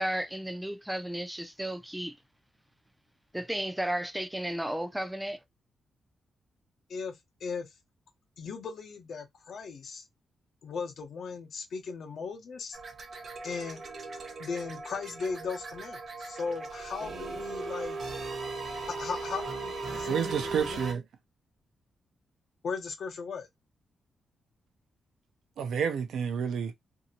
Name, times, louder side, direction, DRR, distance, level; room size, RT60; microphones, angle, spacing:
voice 1, 0.0-2.1 3.3-5.4, right 1 dB, 5° right, 0.4 m, -33 dB
voice 2, 8.4-10.0 10.6-12.8 13.4-13.8 14.4-18.0 18.9-20.8 22.6-23.5, left 5 dB, 65° left, 0.8 m, -37 dB
sound 1, 12.7-20.9, right 3 dB, 45° right, 0.9 m, -38 dB
voice 3, 20.1-21.0 25.6-26.7, right 7 dB, 85° right, 0.6 m, -30 dB
2.8 x 2.7 x 2.7 m
wide cardioid pair, 125°, 0 cm